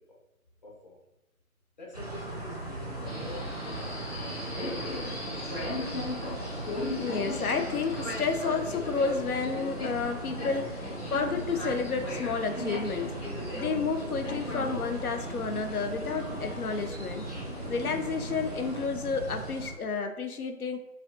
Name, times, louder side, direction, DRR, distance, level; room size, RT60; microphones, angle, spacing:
voice 1, 0.6-1.0 1.8-4.3, left 1 dB, 30° left, -3 dB, 0.8 m, -45 dB
sound 1, 1.9-19.7, right 2 dB, 30° right, 0.5 m, -39 dB
Subway metro underground, 3.1-18.8, left 1 dB, 55° left, 1.5 m, -38 dB
voice 2, 7.0-13.1 13.5-17.2 17.7-20.8, left 5 dB, 80° left, 6 dB, 0.5 m, -31 dB
5.5 x 2.3 x 2.5 m, 0.97 s
figure-of-eight pair, 150°, 44 cm